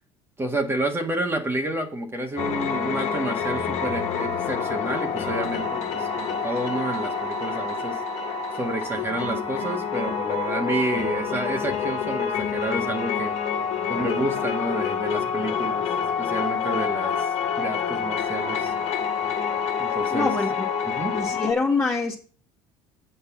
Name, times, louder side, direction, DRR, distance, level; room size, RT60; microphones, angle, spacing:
voice 1, 0.4-8.0 8.5-13.4 13.9-15.9 16.2-18.7 19.8-20.3 20.9-21.1, right 1 dB, 20° right, 2 dB, 1.6 m, -29 dB
sound 1, 2.4-21.5, left 6 dB, 60° left, 1.7 m, -27 dB
voice 2, 20.1-20.7 21.1-22.2, left 4 dB, 20° left, -6 dB, 1.9 m, -25 dB
8.1 x 5.4 x 7.3 m, 0.42 s
supercardioid pair, 95°, 12 cm